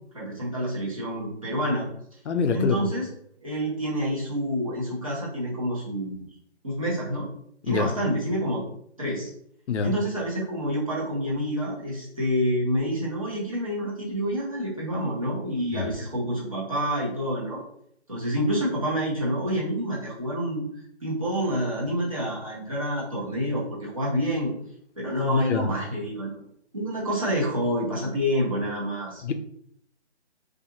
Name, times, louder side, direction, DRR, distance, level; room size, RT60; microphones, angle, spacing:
voice 1, 0.1-1.9 2.5-3.1 3.4-6.3 6.6-7.3 7.7-8.6 9.0-9.3 9.8-17.6 18.1-20.6 21.0-24.5 25.0-26.3 26.7-29.2, equal, 30° right, -6 dB, 0.7 m, -28 dB
voice 2, 2.3-2.9 7.7-7.9 9.7-9.9 15.7-15.9 25.2-25.7 29.2-29.3, left 5 dB, 90° left, 8 dB, 0.5 m, -25 dB
2.4 x 2.4 x 2.7 m, 0.69 s
hypercardioid pair, 175°, 34 cm